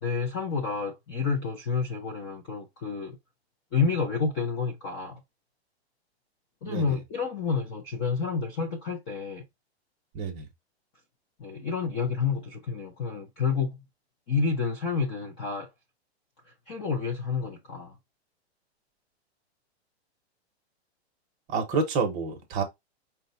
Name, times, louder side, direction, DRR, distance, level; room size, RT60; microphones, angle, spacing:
voice 1, 0.0-3.2 3.7-5.2 6.6-9.4 11.4-13.8 14.3-15.7 16.7-17.9, left 5 dB, 15° left, 0.5 m, -29 dB
voice 2, 10.1-10.5 21.5-22.6, right 4 dB, 20° right, 0.9 m, -28 dB
5.3 x 2.3 x 3.8 m
supercardioid pair, 165°, 33 cm